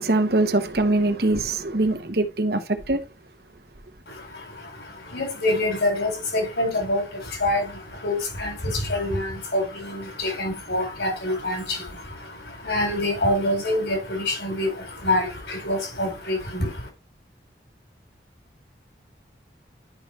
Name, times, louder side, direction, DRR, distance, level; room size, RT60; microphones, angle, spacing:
voice 1, 0.0-2.6 2.9-3.0, right 2 dB, 60° right, 1.0 m, -22 dB
voice 2, 4.1-16.9, left 1 dB, 80° left, 4.2 m, -26 dB
11.0 x 5.5 x 3.2 m
head